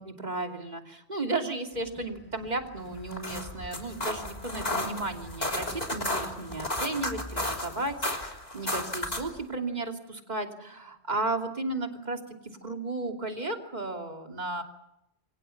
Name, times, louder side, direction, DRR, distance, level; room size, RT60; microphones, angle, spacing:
voice 1, 0.0-14.6, right 2 dB, 40° right, 3 dB, 2.9 m, -34 dB
sound 1, 1.7-7.6, left 1 dB, 10° left, 7.4 m, -50 dB
sound 2, 3.0-9.4, left 1 dB, 40° left, 3.5 m, -33 dB
28.0 x 25.0 x 5.8 m, 0.83 s
omnidirectional pair, 1.1 m